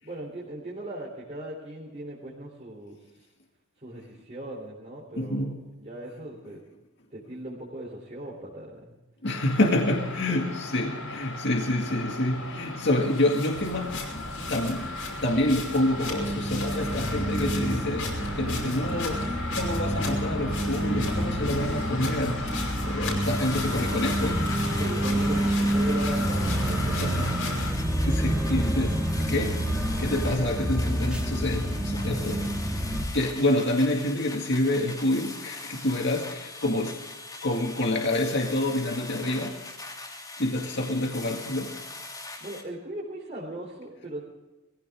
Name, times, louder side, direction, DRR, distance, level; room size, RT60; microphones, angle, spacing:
voice 1, 0.0-3.0 3.8-6.6 7.1-9.0 24.8-27.6 42.4-44.2, right 1 dB, 35° right, -5 dB, 3.5 m, -38 dB
voice 2, 5.2-5.8 9.2-14.9 15.2-24.4 27.0-27.3 27.9-29.6 30.0-37.0 37.4-39.6 40.4-41.7, left 1 dB, 55° left, 1 dB, 2.0 m, -28 dB
sound 1, 9.2-27.7, left 3 dB, 85° left, 5.7 m, -35 dB
sound 2, 13.5-33.0, right 1 dB, 5° right, 2.1 m, -29 dB
sound 3, 23.2-42.6, left 2 dB, 20° left, 2.8 m, -41 dB
21.0 x 16.0 x 3.7 m, 1.1 s
head